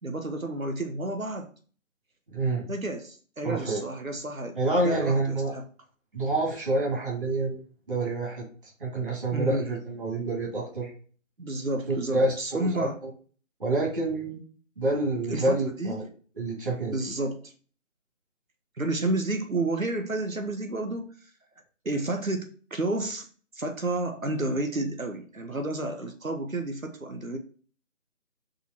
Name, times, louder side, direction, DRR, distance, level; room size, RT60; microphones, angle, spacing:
voice 1, 0.0-1.5 2.7-4.6 4.8-5.7 9.3-9.7 11.4-13.0 15.3-16.0 16.8-17.5 18.8-21.3 21.8-23.3 23.5-27.4, right 2 dB, 90° right, 5 dB, 1.3 m, -31 dB
voice 2, 2.3-2.7 3.4-3.8 4.6-5.5 6.1-7.6 7.9-8.5 8.8-10.9 11.9-13.1 13.6-14.4 14.8-16.1 16.4-17.0, right 2 dB, 40° right, -3 dB, 2.4 m, -27 dB
5.5 x 4.4 x 4.4 m, 0.41 s
figure-of-eight pair, 160°, 39 cm